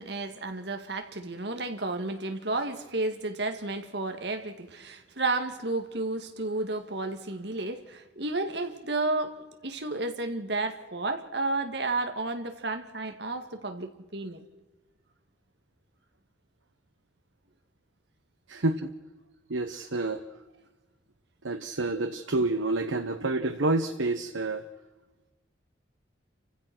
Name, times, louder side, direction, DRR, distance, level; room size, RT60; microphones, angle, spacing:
voice 1, 0.0-14.5, right 2 dB, 60° right, 7 dB, 2.2 m, -32 dB
voice 2, 18.5-18.9 19.5-20.2 21.4-24.6, right 2 dB, 85° right, 8 dB, 1.1 m, -28 dB
29.5 x 15.5 x 6.2 m, 1.2 s
head